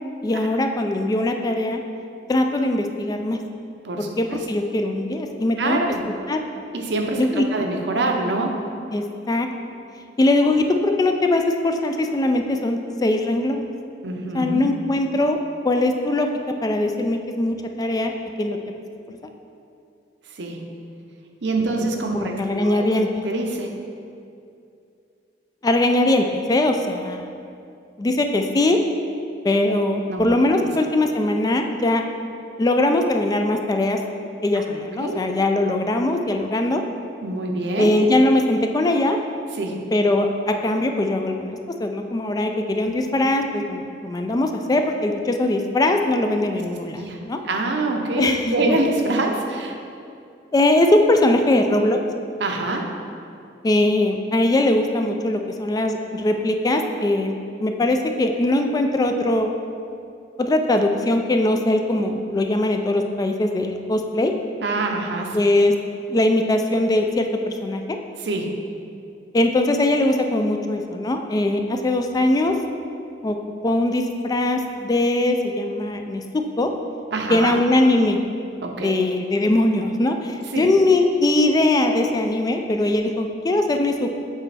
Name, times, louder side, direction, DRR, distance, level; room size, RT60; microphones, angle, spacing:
voice 1, 0.2-1.8 2.3-3.4 4.0-5.8 6.3-6.4 7.2-7.4 8.9-9.5 10.2-13.7 14.3-15.4 15.6-16.3 16.6-18.6 19.1-19.2 21.6-21.9 22.1-23.1 25.6-27.3 28.0-28.8 29.4-32.0 32.6-34.0 34.4-36.8 37.8-39.2 39.9-47.4 48.2-48.8 50.5-52.0 53.6-57.4 57.6-59.5 60.4-64.3 65.3-65.7 66.1-67.8 69.3-72.5 73.2-73.4 73.6-76.2 76.6-76.7 77.3-78.2 78.8-84.1, left 1 dB, 20° left, 4 dB, 0.3 m, -21 dB
voice 2, 3.8-4.4 5.6-6.0 6.7-8.7 14.0-14.6 20.4-20.8 21.4-22.9 23.2-23.8 30.1-30.3 34.5-34.6 35.0-35.2 37.2-37.9 39.6-39.9 46.9-48.3 48.5-49.7 52.4-53.0 64.6-65.4 68.2-68.6 77.1-77.6 78.6-79.0 80.5-80.7, right 2 dB, 75° right, 2 dB, 0.7 m, -25 dB
7.3 x 4.2 x 3.3 m, 2.5 s
head